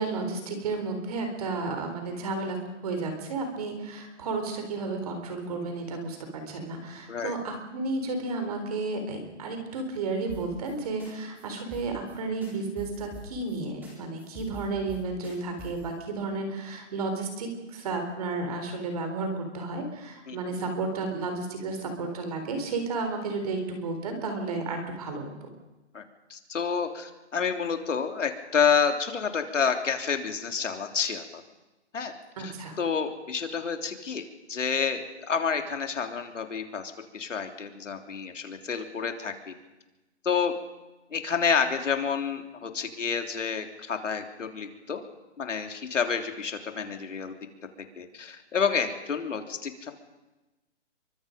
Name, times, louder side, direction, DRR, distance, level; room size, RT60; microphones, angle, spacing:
voice 1, 0.0-2.6 2.8-25.3 32.4-32.8, right 3 dB, 30° right, 5 dB, 4.0 m, -32 dB
sound 1, 10.3-10.7 11.0-11.1 11.4-11.5 11.7-12.2 12.4-13.6 13.8-13.9 14.2-15.9, right 2 dB, 5° right, 3.1 m, -44 dB
voice 2, 26.3-31.2 31.9-32.1 32.4-34.2 34.5-35.0 35.3-39.5 40.2-40.5 41.1-45.0 45.4-47.3 48.0-49.9, left 6 dB, 80° left, 5 dB, 3.4 m, -29 dB
27.0 x 24.0 x 5.3 m, 1.1 s
hypercardioid pair, 175°, 37 cm